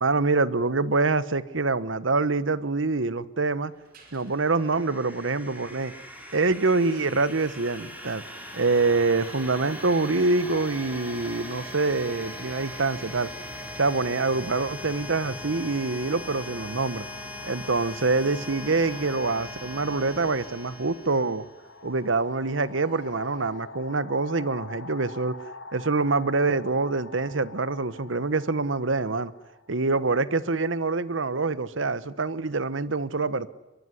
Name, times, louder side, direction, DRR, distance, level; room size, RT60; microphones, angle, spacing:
voice 1, 0.0-3.7 4.1-5.9 6.3-8.2 8.5-13.3 13.8-17.0 17.4-21.4 21.8-25.3 25.7-29.3 29.7-33.5, right 3 dB, 80° right, 1.1 m, -25 dB
sound 1, 3.7-23.7, right 1 dB, 50° right, 5.5 m, -60 dB
sound 2, 4.1-21.7, left 1 dB, 10° right, 4.9 m, -40 dB
sound 3, 12.7-12.9 13.8-30.5, left 3 dB, 70° left, 1.5 m, -46 dB
22.5 x 22.5 x 9.8 m
head